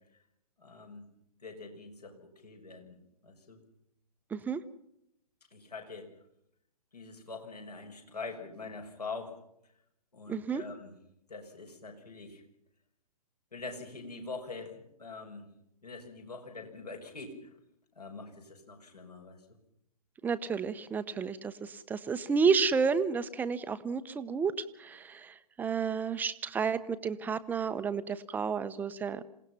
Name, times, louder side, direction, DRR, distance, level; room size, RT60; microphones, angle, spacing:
voice 1, 0.6-1.1 1.4-3.0 3.2-3.6 5.5-6.1 6.9-9.4 10.1-10.9 11.3-12.4 13.5-15.5 15.8-17.5 17.9-19.4, left 3 dB, 75° left, 3 dB, 6.4 m, -44 dB
voice 2, 10.3-10.6 20.2-24.5 24.8-29.2, right 5 dB, 10° right, 12 dB, 0.9 m, -31 dB
27.5 x 18.0 x 5.8 m, 0.77 s
figure-of-eight pair, 120°, 20 cm